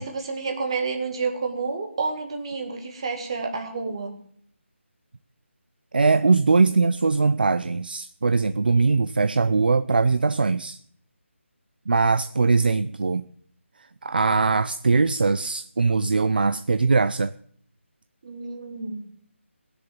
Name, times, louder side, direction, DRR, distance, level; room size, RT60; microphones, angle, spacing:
voice 1, 0.0-4.1 18.2-19.1, right 4 dB, 25° right, 4 dB, 2.0 m, -29 dB
voice 2, 5.9-10.8 11.9-13.3 13.8-17.3, right 4 dB, 45° right, 14 dB, 0.5 m, -21 dB
17.5 x 7.0 x 9.5 m, 0.62 s
figure-of-eight pair, 180°, 7 cm